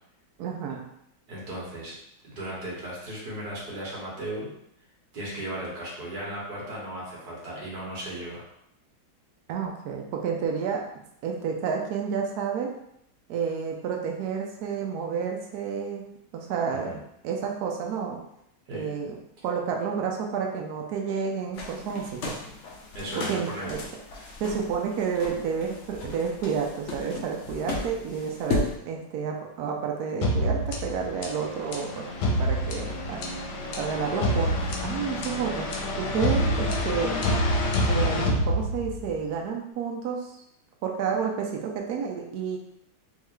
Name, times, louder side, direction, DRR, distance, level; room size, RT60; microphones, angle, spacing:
voice 1, 0.4-0.9 9.5-10.8 11.2-12.7 13.3-16.0 16.3-18.2 18.7-19.2 19.4-22.3 23.2-23.8 24.4-32.1 32.4-33.2 33.8-37.1 37.9-40.3 40.8-42.6, right 6 dB, 75° right, 1 dB, 0.9 m, -30 dB
voice 2, 1.3-1.9 2.2-4.5 5.1-8.5 16.8-17.0 18.7-18.9 22.9-23.7, right 1 dB, 55° right, -5 dB, 1.9 m, -36 dB
sound 1, 21.5-28.7, left 2 dB, 85° left, 0.6 m, -35 dB
sound 2, 30.2-39.2, equal, 65° left, 1.2 m, -27 dB
3.7 x 3.1 x 3.2 m, 0.75 s
omnidirectional pair, 2.2 m